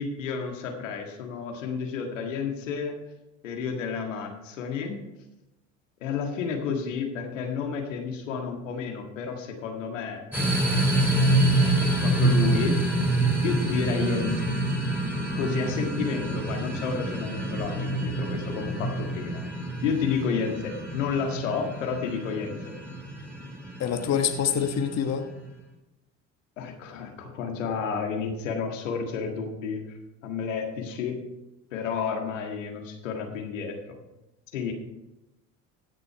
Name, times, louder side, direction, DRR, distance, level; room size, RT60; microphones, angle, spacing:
voice 1, 0.0-3.0 3.4-5.0 6.0-10.2 10.8-10.9 11.2-12.8 13.4-14.6 15.4-19.4 19.8-22.7 26.6-30.0 30.2-31.2 31.7-33.9 34.5-34.7, left 6 dB, 90° left, 2 dB, 1.8 m, -31 dB
sound 1, 10.3-25.4, right 1 dB, 5° right, 4.2 m, -27 dB
voice 2, 23.8-25.2, left 8 dB, 45° left, 6 dB, 1.2 m, -26 dB
15.5 x 6.9 x 4.6 m, 0.96 s
hypercardioid pair, 70°, 37 cm